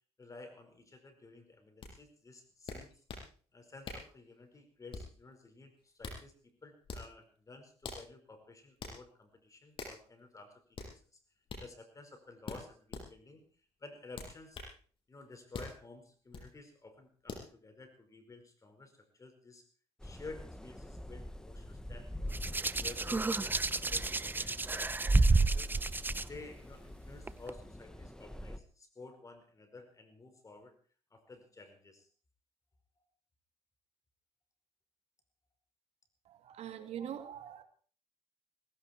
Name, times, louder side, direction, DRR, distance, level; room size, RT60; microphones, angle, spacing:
voice 1, 0.2-2.9 3.5-11.2 11.6-13.4 13.8-14.6 15.1-19.7 20.0-24.1 24.3-30.7 31.1-32.1 33.0-33.1, left 3 dB, 30° left, 7 dB, 5.1 m, -53 dB
sound 1, 1.8-1.9 2.7-3.3 3.8-4.1 4.9-5.2 5.8-6.2 6.8-7.1 7.8-8.1 8.8-9.0 9.8-10.0 10.7-10.9 11.5-11.7 12.5-13.1 14.1-14.7 15.5-15.8 16.3-16.5 17.3-17.5, left 4 dB, 50° left, 7.5 m, -43 dB
sound 2, 20.0-28.6, left 1 dB, 5° left, 1.2 m, -45 dB
Hands, 22.3-26.2 27.3-27.5, right 3 dB, 15° right, 0.9 m, -29 dB
voice 2, 36.3-37.6, right 9 dB, 70° right, 8 dB, 2.3 m, -43 dB
18.5 x 17.0 x 4.5 m, 0.42 s
cardioid pair, 85°, 11 cm